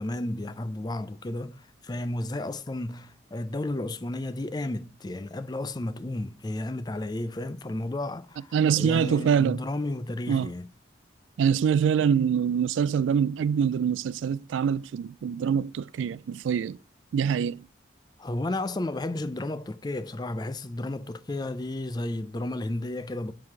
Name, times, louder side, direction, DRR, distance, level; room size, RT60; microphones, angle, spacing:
voice 1, 0.0-10.7 18.2-23.3, left 1 dB, 20° left, 0.4 m, -33 dB
voice 2, 8.5-9.6 10.3-10.5 11.4-16.8 17.1-17.7, right 7 dB, 90° right, 0.3 m, -24 dB
7.6 x 4.7 x 5.9 m
head